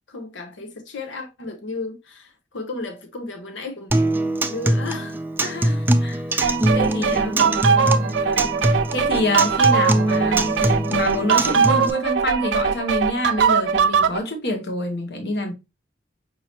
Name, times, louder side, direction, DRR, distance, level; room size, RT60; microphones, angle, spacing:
voice 1, 0.1-4.1 4.5-5.2 5.7-5.9 6.5-8.5, left 3 dB, 90° left, 0.9 m, -35 dB
Acoustic guitar, 3.9-11.9, right 1 dB, 10° right, 0.3 m, -23 dB
voice 2, 5.4-7.4 8.2-15.5, left 1 dB, 60° left, 1.0 m, -27 dB
Hype Crowd, 6.4-14.2, right 6 dB, 85° right, 0.4 m, -20 dB
5.4 x 2.9 x 2.9 m
head